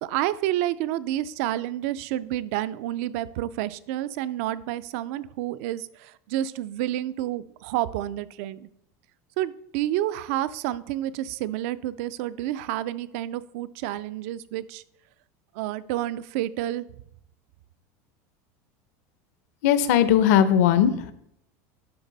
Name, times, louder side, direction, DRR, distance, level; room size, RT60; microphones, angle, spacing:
voice 1, 0.0-8.7 9.4-14.8 15.6-16.9, right 13 dB, 60° right, 17 dB, 0.4 m, -29 dB
voice 2, 19.6-21.1, left 9 dB, 70° left, 13 dB, 0.7 m, -19 dB
11.0 x 4.1 x 3.9 m, 0.74 s
supercardioid pair, 165°, 9 cm